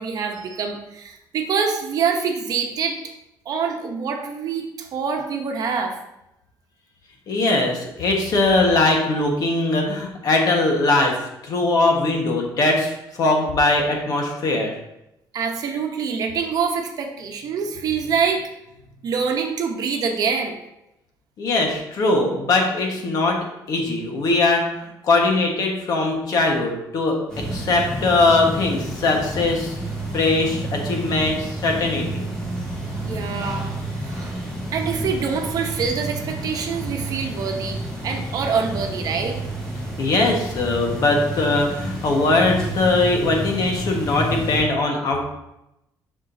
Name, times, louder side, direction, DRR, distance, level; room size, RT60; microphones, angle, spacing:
voice 1, 0.0-3.0 3.4-6.0 15.3-18.4 19.0-20.6 31.8-32.0 33.0-33.7 34.0-34.3 34.7-37.8 38.0-39.4, right 6 dB, 55° right, 3 dB, 0.9 m, -25 dB
voice 2, 7.3-11.2 11.4-14.7 21.4-24.7 25.0-29.7 30.1-32.2 40.0-45.2, left 2 dB, 55° left, 1 dB, 1.4 m, -21 dB
sound 1, 27.3-44.6, right 1 dB, 10° left, 2.3 m, -30 dB
7.2 x 6.1 x 2.8 m, 0.87 s
cardioid pair, 135°, 8 cm